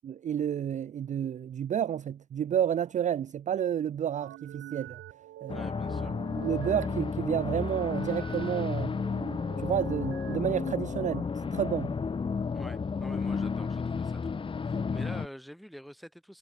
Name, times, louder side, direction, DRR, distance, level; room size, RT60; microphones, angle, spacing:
voice 1, 0.0-5.0 5.4-5.6 6.4-8.9 9.6-11.9, right 9 dB, 40° right, 0.4 m, -30 dB
sine-waves, 4.2-11.2, right 14 dB, 85° right, 5.0 m, -46 dB
sound 1, 5.5-15.3, left 5 dB, 25° left, 0.7 m, -32 dB
voice 2, 5.5-6.2 12.5-16.4, equal, ahead, 2.2 m, -47 dB
cardioid pair, 90°, 20 cm